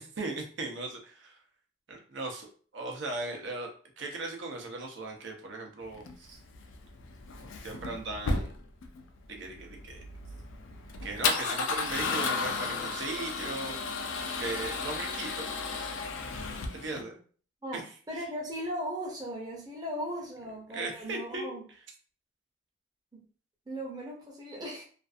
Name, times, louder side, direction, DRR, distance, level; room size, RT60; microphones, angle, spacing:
voice 1, 0.0-1.3 1.9-2.5 2.7-3.7 4.0-6.4 7.6-8.5 9.3-10.0 11.0-13.8 14.4-15.5 15.8-15.9 16.7-17.2 17.7-17.8 18.1-18.2 20.7-21.6, right 2 dB, 75° right, 2 dB, 0.6 m, -38 dB
Male speech man speaking / Car / Engine starting, 5.9-17.0, left 4 dB, 85° left, 0.4 m, -34 dB
voice 2, 18.1-21.6 23.1-23.2 23.7-24.8, equal, 20° right, -3 dB, 0.6 m, -37 dB
2.5 x 2.4 x 2.4 m, 0.42 s
head